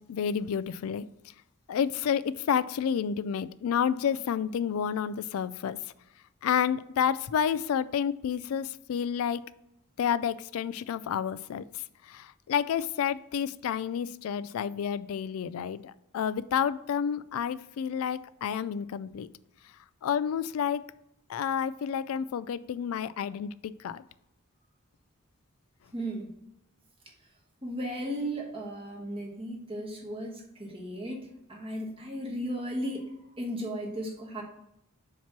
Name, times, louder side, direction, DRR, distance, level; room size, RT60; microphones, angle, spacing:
voice 1, 0.1-1.3 1.7-5.8 6.4-9.4 10.0-19.3 20.0-20.8 21.3-24.0, left 8 dB, 75° left, 16 dB, 0.3 m, -30 dB
voice 2, 25.9-26.3 27.6-34.4, equal, 25° right, 0 dB, 1.2 m, -35 dB
7.2 x 3.0 x 5.8 m, 0.82 s
head